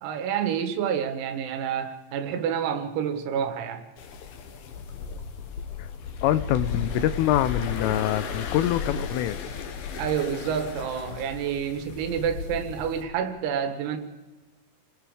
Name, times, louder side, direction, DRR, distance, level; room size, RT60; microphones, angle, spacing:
voice 1, 0.0-3.8 10.0-14.0, right 8 dB, 90° right, 7 dB, 4.3 m, -28 dB
sound 1, 4.0-13.0, left 5 dB, 65° left, 2.7 m, -35 dB
voice 2, 6.2-9.4, left 13 dB, 80° left, 14 dB, 3.2 m, -25 dB
29.5 x 19.5 x 5.0 m, 1.2 s
omnidirectional pair, 6.0 m